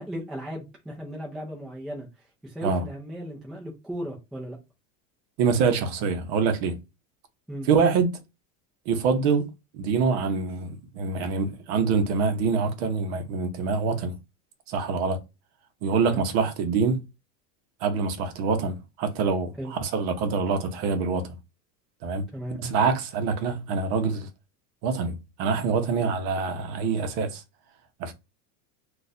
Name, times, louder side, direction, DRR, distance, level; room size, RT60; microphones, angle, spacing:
voice 1, 0.0-2.1 2.4-4.6 7.5-7.7 15.9-16.2 19.6-19.7 22.3-22.6, equal, ahead, 0.4 m, -36 dB
voice 2, 5.4-6.8 7.6-8.2 8.9-9.5 9.7-14.1 14.7-15.2 15.8-17.0 17.8-21.4 22.0-22.3 22.6-24.3 24.8-27.4 28.0-28.1, right 5 dB, 50° right, 0.7 m, -25 dB
2.5 x 2.3 x 4.0 m
supercardioid pair, 165°, 40 cm